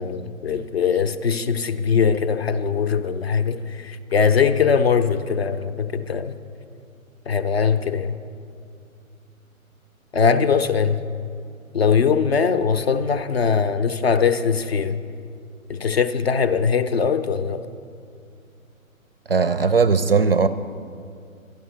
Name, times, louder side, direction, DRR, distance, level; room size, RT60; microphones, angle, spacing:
voice 1, 0.0-6.3 7.3-8.2 10.1-11.0 11.7-15.0 15.7-17.7, left 6 dB, 45° left, 0.6 m, -21 dB
voice 2, 19.3-20.5, right 5 dB, 45° right, 0.4 m, -18 dB
11.5 x 11.0 x 6.4 m
figure-of-eight pair, 130°, 42 cm